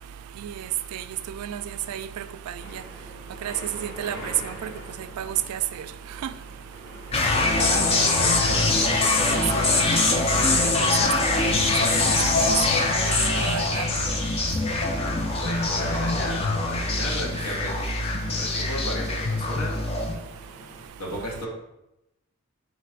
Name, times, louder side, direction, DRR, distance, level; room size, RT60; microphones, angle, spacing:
sound 1, 2.6-20.9, left 1 dB, 65° left, 1.2 m, -42 dB
voice 1, 3.8-4.7 5.2-5.6 9.3-11.1 11.9-12.1 12.5-12.6 13.1-13.8, right 11 dB, 85° right, 0.3 m, -31 dB
voice 2, 7.0-8.8 15.4-18.1 18.4-19.8 21.0-21.5, equal, 85° left, 1.2 m, -34 dB
sound 2, 7.1-20.2, left 2 dB, 25° left, 0.4 m, -23 dB
3.8 x 2.5 x 4.4 m
head